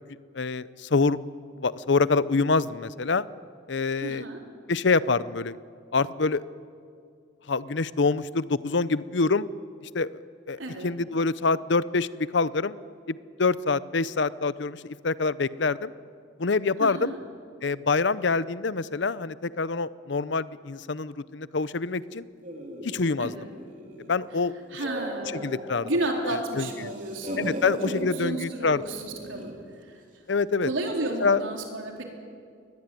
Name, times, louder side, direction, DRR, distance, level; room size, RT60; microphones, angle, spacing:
voice 1, 0.3-1.2 1.6-3.3 3.7-4.2 4.7-5.6 5.9-6.4 7.5-9.5 9.8-10.2 10.5-12.7 13.1-15.9 16.4-17.1 17.6-22.3 22.8-23.3 24.1-24.5 25.4-25.9 26.2-26.9 27.4-28.8 30.3-30.7 31.2-31.4, left 4 dB, 65° left, 17 dB, 0.7 m, -26 dB
voice 2, 4.0-4.4 10.6-10.9 16.8-17.2 23.2-23.5 24.7-25.5 25.8-27.4 27.8-29.5 29.8-30.0 30.6-32.0, right 1 dB, 80° right, 1 dB, 4.1 m, -32 dB
sound 1, 22.4-24.2 24.6-26.3 26.6-28.0 28.8-29.6, right 1 dB, 40° right, 3.4 m, -37 dB
23.0 x 20.0 x 9.3 m, 2.2 s
head